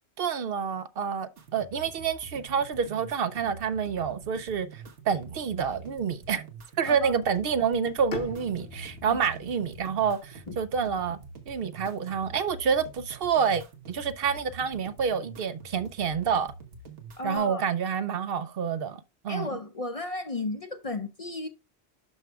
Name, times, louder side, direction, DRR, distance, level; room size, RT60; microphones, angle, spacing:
voice 1, 0.2-6.4 6.8-11.2 11.5-16.5 17.2-19.5, right 7 dB, 65° right, 0.7 m, -28 dB
sound 1, 1.4-17.4, right 3 dB, 90° right, 1.5 m, -46 dB
Bowed string instrument, 8.1-12.0, left 5 dB, 70° left, 1.3 m, -44 dB
voice 2, 17.2-17.6 19.3-21.5, left 2 dB, 40° left, 0.5 m, -34 dB
12.0 x 4.7 x 2.3 m
omnidirectional pair, 1.1 m